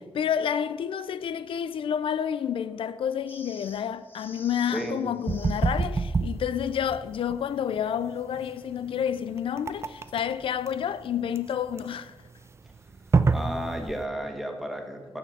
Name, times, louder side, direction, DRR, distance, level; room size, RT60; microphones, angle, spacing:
voice 1, 0.2-12.1, left 8 dB, 80° left, 0.4 m, -29 dB
sound 1, 3.3-5.8 9.8-10.1, left 2 dB, 20° left, 1.7 m, -49 dB
voice 2, 4.7-5.0 13.3-15.2, equal, ahead, 1.7 m, -33 dB
sound 2, 5.3-14.1, right 4 dB, 30° right, 0.5 m, -28 dB
10.5 x 7.0 x 7.1 m
wide cardioid pair, 120°, 9 cm